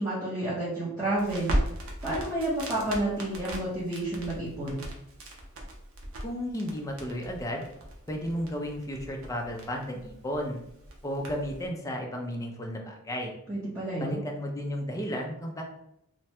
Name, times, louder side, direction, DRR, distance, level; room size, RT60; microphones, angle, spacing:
voice 1, 0.0-1.6 2.0-4.8 13.5-14.2, right 1 dB, 15° right, -11 dB, 0.8 m, -30 dB
Crackle, 1.1-11.7, right 1 dB, 75° right, 0.7 m, -37 dB
voice 2, 6.2-7.7 8.1-10.6 11.0-13.4 14.0-15.6, equal, 15° left, 1 dB, 0.4 m, -33 dB
3.2 x 2.2 x 2.8 m, 0.80 s
head